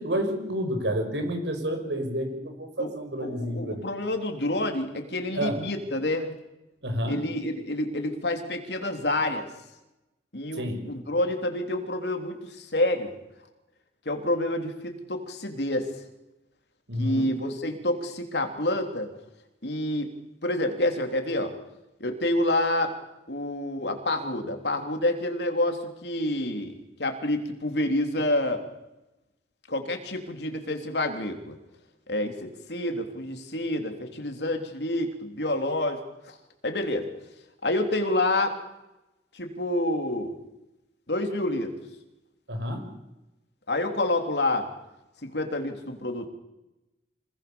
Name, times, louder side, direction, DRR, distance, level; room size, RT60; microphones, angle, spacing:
voice 1, 0.0-3.9 5.3-5.6 6.8-7.2 10.5-10.9 16.9-17.3 42.5-42.9, equal, 85° right, 5 dB, 5.8 m, -29 dB
voice 2, 3.2-6.3 7.1-9.5 10.3-13.1 14.0-16.0 17.0-19.1 19.6-20.1 20.4-21.5 22.0-22.9 23.3-26.7 27.0-28.6 29.7-31.6 32.1-36.4 36.6-37.1 37.6-38.6 39.3-40.4 41.1-41.7 43.7-44.7 45.2-46.3, left 1 dB, 70° left, 5 dB, 3.5 m, -28 dB
26.5 x 20.5 x 7.1 m, 0.95 s
head